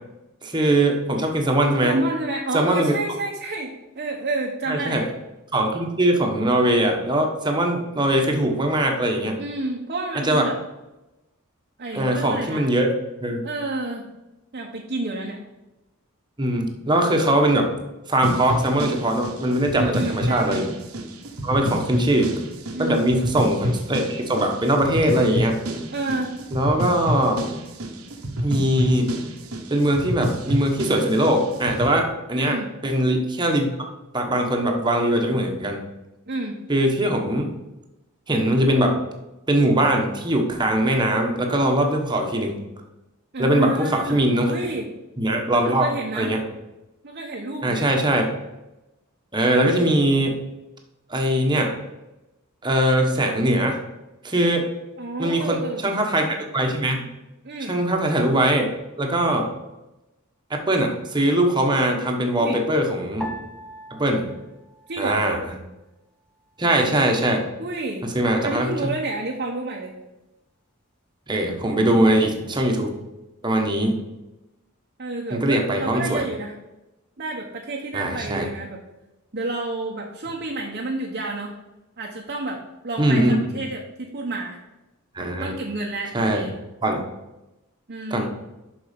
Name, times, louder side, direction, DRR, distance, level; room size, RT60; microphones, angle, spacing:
voice 1, 0.4-1.9 2.5-2.9 4.7-5.0 5.5-9.4 10.2-10.4 11.9-12.9 13.2-13.4 16.4-17.7 18.1-20.6 21.4-22.4 22.8-25.6 26.5-27.4 28.4-29.1 29.7-33.7 34.1-35.8 36.7-37.5 38.3-39.0 39.5-42.6 43.4-44.5 45.2-45.9 46.1-46.4 47.6-48.3 49.3-50.4 51.1-51.7 52.6-53.8 54.2-54.7 55.2-57.0 57.6-58.7 59.0-59.5 60.5-63.3 63.9-64.3 65.0-65.4 66.6-67.4 68.1-68.9 71.3-72.9 73.4-74.0 75.3-76.2 77.9-78.5 83.0-83.4 85.1-85.5 86.1-86.5 86.8-87.0 88.1-88.3, right 1 dB, 20° right, 2 dB, 1.2 m, -21 dB
voice 2, 1.8-5.1 9.4-10.6 11.8-12.7 13.4-14.1 14.5-15.4 19.8-20.6 22.7-23.1 25.9-26.3 32.3-32.7 36.3-36.6 43.3-44.9 45.5-46.3 47.0-47.9 55.0-55.8 57.4-57.8 62.4-62.6 64.9-65.3 67.6-68.1 68.4-70.0 73.6-74.0 75.0-76.5 77.2-78.8 79.3-81.6 82.0-84.6 85.2-86.5 87.9-88.3, right 2 dB, 45° right, -1 dB, 0.9 m, -29 dB
sound 1, 18.2-31.9, equal, 85° right, 1.2 m, -29 dB
sound 2, 63.2-65.7 66.0-66.9 67.5-67.9, equal, 5° left, 0.9 m, -41 dB
6.9 x 6.1 x 5.2 m, 0.97 s
head